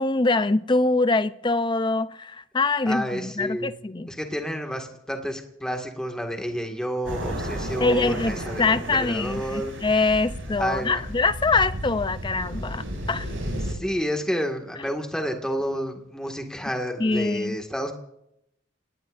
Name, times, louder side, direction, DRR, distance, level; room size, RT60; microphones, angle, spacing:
voice 1, 0.0-4.1 7.8-13.3 17.0-17.5, left 3 dB, 25° left, 0.5 m, -24 dB
voice 2, 2.9-3.7 4.1-9.8 10.5-11.0 13.6-17.9, equal, 5° left, 1.9 m, -30 dB
sound 1, 7.0-13.7, equal, 75° right, 6.6 m, -33 dB
29.0 x 18.5 x 2.6 m
head